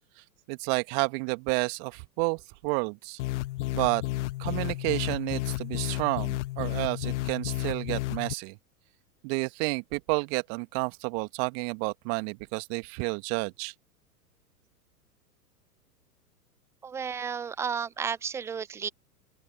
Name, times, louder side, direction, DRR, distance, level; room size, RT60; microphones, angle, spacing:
voice 1, 0.5-3.2 3.7-4.0 4.4-8.6 9.2-13.7, right 36 dB, 40° right, 2.0 m, -30 dB
sound 1, 3.2-8.3, left 17 dB, 50° left, 1.2 m, -32 dB
voice 2, 16.8-18.9, right 6 dB, 5° right, 0.4 m, -32 dB
open air
figure-of-eight pair, 105°, 47 cm